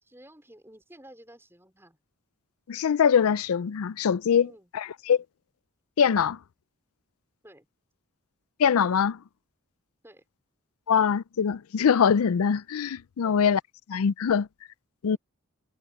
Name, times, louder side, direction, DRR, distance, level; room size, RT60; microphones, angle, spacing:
voice 1, 0.0-2.0 4.4-4.7 7.4-7.7 10.0-10.2 13.2-13.4, right 1 dB, 10° right, 4.7 m, -52 dB
voice 2, 2.7-5.2 6.0-6.4 8.6-9.2 10.9-13.6 13.9-14.5 15.0-15.2, left 7 dB, 75° left, 0.4 m, -23 dB
head